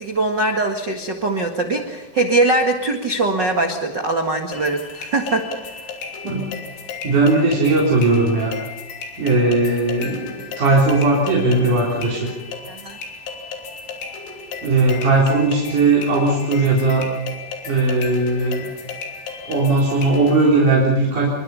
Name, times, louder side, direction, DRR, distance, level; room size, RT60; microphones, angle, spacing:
voice 1, 0.0-5.8 12.7-13.0, right 2 dB, 70° right, 4 dB, 1.0 m, -22 dB
sound 1, 4.5-20.5, left 5 dB, 85° left, 5.5 m, -34 dB
voice 2, 7.0-8.5 9.2-10.3 10.6-12.3 14.6-17.1 17.7-18.7 19.5-21.3, right 3 dB, 45° right, -4 dB, 5.0 m, -18 dB
28.0 x 23.0 x 5.6 m, 1.0 s
omnidirectional pair, 5.3 m